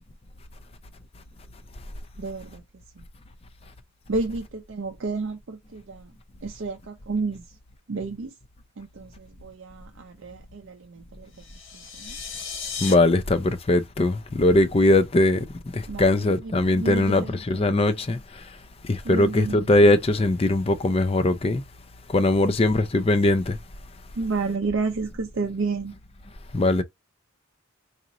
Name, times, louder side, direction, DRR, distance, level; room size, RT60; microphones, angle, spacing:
voice 1, 2.2-2.6 3.0-3.1 4.1-6.1 6.4-7.5 7.9-8.3 8.8-11.3 11.7-12.2 15.9-17.8 19.0-19.7 24.2-25.9, right 3 dB, 55° right, 0.5 m, -31 dB
sound 1, 11.3-12.9, left 6 dB, 60° left, 1.3 m, -35 dB
voice 2, 12.8-15.5 15.7-18.2 18.8-21.6 22.1-23.6 26.5-26.8, left 2 dB, 25° left, 0.4 m, -20 dB
4.1 x 2.5 x 2.7 m
head